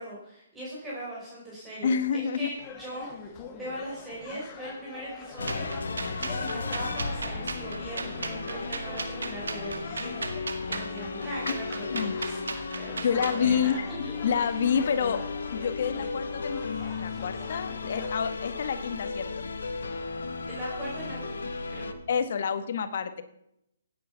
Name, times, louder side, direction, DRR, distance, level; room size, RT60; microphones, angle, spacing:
voice 1, 0.0-5.7 6.2-10.2 10.7-12.4 12.8-13.8 14.0-14.1 20.5-21.9, equal, 10° right, -7 dB, 5.2 m, -40 dB
voice 2, 1.8-2.5 11.9-12.2 13.0-15.2 15.5-16.6 17.0-19.5 22.1-23.2, left 7 dB, 60° left, 10 dB, 1.6 m, -28 dB
sound 1, 2.6-18.1, left 5 dB, 25° left, 2.1 m, -46 dB
sound 2, 5.4-21.9, left 4 dB, 85° left, 1.9 m, -35 dB
sound 3, 5.5-13.4, right 4 dB, 85° right, 2.0 m, -36 dB
17.0 x 9.4 x 5.8 m, 0.81 s
hypercardioid pair, 150°, 0 cm